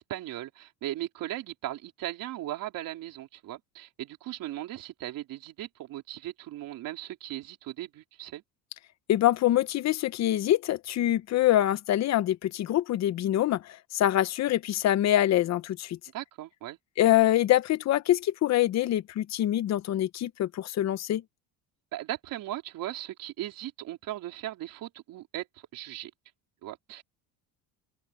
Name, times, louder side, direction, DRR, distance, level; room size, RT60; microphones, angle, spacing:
voice 1, 0.0-8.4 16.1-16.8 21.9-26.1 26.6-27.0, right 14 dB, 55° right, 3.9 m, -38 dB
voice 2, 9.1-16.0 17.0-21.2, left 13 dB, 40° left, 0.9 m, -25 dB
open air
cardioid pair, 140°, 39 cm